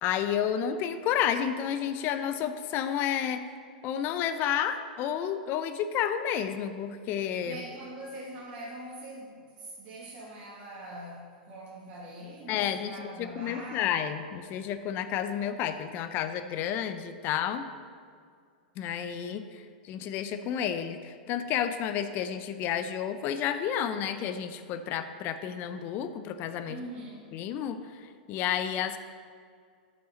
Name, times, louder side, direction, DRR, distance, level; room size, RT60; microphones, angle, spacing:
voice 1, 0.0-3.5 3.8-7.6 12.5-17.7 18.8-26.8 27.3-29.0, left 9 dB, 45° left, 10 dB, 0.7 m, -31 dB
voice 2, 7.4-14.0 26.6-27.3, right 1 dB, 45° right, -6 dB, 2.3 m, -43 dB
12.0 x 5.5 x 3.9 m, 2.2 s
hypercardioid pair, 115°, 5 cm